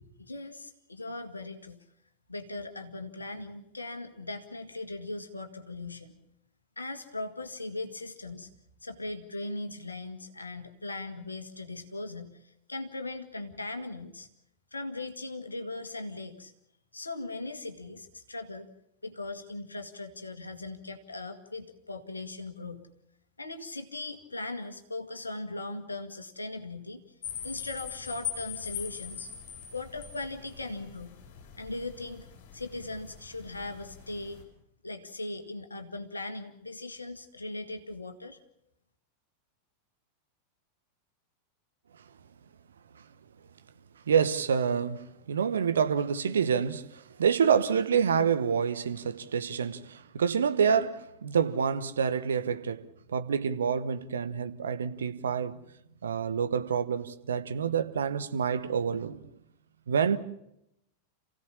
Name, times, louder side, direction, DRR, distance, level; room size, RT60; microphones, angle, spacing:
voice 1, 0.2-1.8 2.3-6.2 6.8-8.5 8.8-14.3 14.7-16.5 16.9-18.7 19.0-22.9 23.4-27.0 27.4-29.3 29.7-31.2 31.6-32.3 32.5-34.4 34.8-38.4, left 2 dB, 80° left, 2.0 m, -39 dB
sound 1, 27.2-34.4, left 8 dB, 50° left, 6.0 m, -42 dB
voice 2, 44.1-55.6 56.0-59.3 59.9-60.2, right 7 dB, 65° right, 1.1 m, -27 dB
28.0 x 16.5 x 7.2 m
figure-of-eight pair, 90°, 0 cm